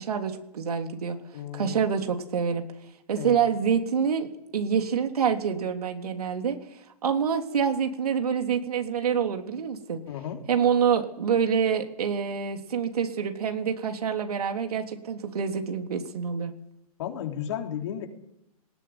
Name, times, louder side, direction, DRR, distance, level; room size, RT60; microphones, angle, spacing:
voice 1, 0.0-1.2 1.5-2.6 3.1-4.3 4.5-6.6 7.0-10.0 10.5-16.5, right 7 dB, 80° right, 4 dB, 3.3 m, -26 dB
voice 2, 1.3-1.8 3.1-3.4 10.1-10.4 17.0-18.1, left 10 dB, 50° left, 3 dB, 3.5 m, -34 dB
18.5 x 17.5 x 9.7 m, 0.83 s
hypercardioid pair, 155°, 19 cm